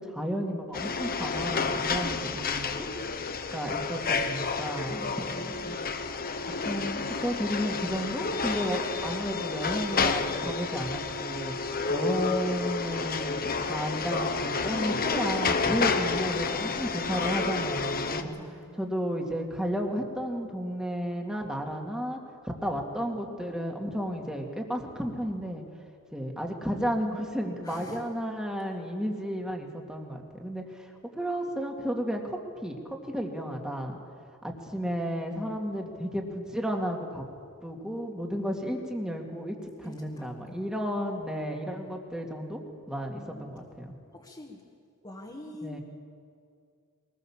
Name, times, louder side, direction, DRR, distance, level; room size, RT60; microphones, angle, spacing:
voice 1, 0.0-2.7 3.5-5.8 6.6-11.6 11.9-22.2 22.4-25.6 26.1-34.0 34.4-37.2 37.6-43.9 45.6-45.8, equal, 5° right, 1 dB, 2.2 m, -33 dB
sound 1, 0.7-18.2, left 4 dB, 40° left, 1.1 m, -30 dB
voice 2, 16.2-17.3 18.2-18.8 27.6-28.0 39.8-40.7 43.1-43.6 44.1-44.6 45.0-45.8, left 1 dB, 20° left, -2 dB, 1.9 m, -46 dB
22.5 x 20.0 x 7.3 m, 2.3 s
head